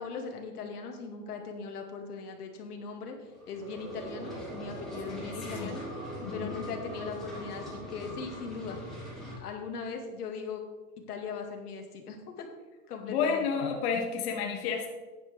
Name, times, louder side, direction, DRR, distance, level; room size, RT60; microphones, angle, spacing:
voice 1, 0.0-3.2 3.5-5.8 6.3-8.8 9.4-10.6 11.1-12.5 12.9-13.5, left 5 dB, 85° left, 3 dB, 2.2 m, -39 dB
sound 1, 3.2-9.3, left 1 dB, ahead, 3.2 m, -42 dB
sound 2, 3.6-8.8, right 3 dB, 75° right, 1.9 m, -44 dB
voice 2, 5.1-5.7 6.2-6.6 13.0-14.9, left 6 dB, 45° left, 2 dB, 1.4 m, -31 dB
10.5 x 9.9 x 3.4 m, 1.3 s
supercardioid pair, 155°, 45 cm